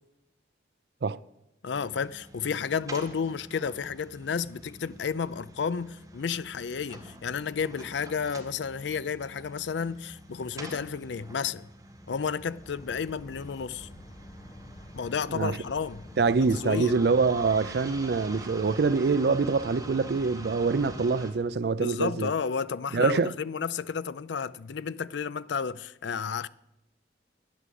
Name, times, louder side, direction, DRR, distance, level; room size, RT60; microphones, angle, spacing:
voice 1, 1.6-11.7 12.1-13.9 14.9-17.0 21.8-26.5, left 6 dB, 80° left, 0.5 m, -32 dB
sound 1, 1.7-21.3, right 1 dB, 20° right, 1.4 m, -47 dB
sound 2, 12.6-21.0, left 1 dB, 30° left, 1.2 m, -50 dB
voice 2, 16.2-22.3 22.9-23.3, right 4 dB, 60° right, 0.4 m, -25 dB
11.5 x 9.5 x 7.7 m
head